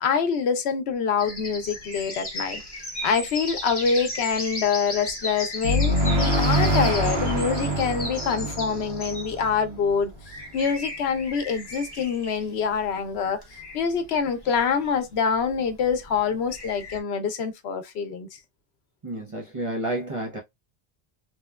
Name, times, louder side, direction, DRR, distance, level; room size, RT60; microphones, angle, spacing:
voice 1, 0.0-2.6 3.0-10.1 10.5-18.4, left 6 dB, 85° left, 0.9 m, -25 dB
sound 1, 1.2-17.0, left 1 dB, 25° left, 1.1 m, -36 dB
sound 2, 5.6-10.2, equal, 80° right, 1.1 m, -25 dB
voice 2, 19.0-20.4, right 1 dB, 35° right, 0.6 m, -30 dB
3.0 x 2.1 x 2.2 m
omnidirectional pair, 1.1 m